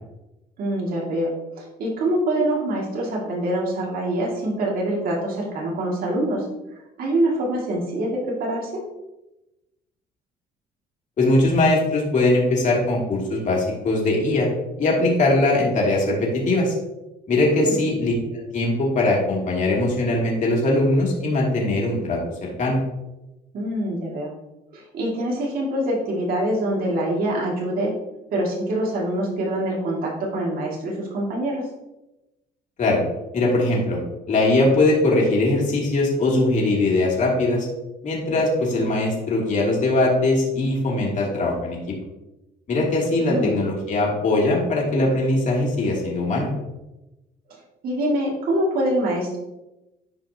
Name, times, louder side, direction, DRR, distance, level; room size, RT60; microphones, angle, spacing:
voice 1, 0.6-6.5 7.0-8.8 17.5-17.8 23.5-24.3 24.7-27.9 28.3-31.7 43.3-43.6 47.5-49.4, right 1 dB, 60° right, -3 dB, 2.4 m, -25 dB
voice 2, 11.2-14.5 14.8-16.7 17.3-22.8 32.8-33.0 33.3-34.0 34.3-37.7 38.0-41.9 42.7-46.5, left 2 dB, 45° left, -2 dB, 2.8 m, -21 dB
12.0 x 5.1 x 2.9 m, 0.97 s
cardioid pair, 110°, 17 cm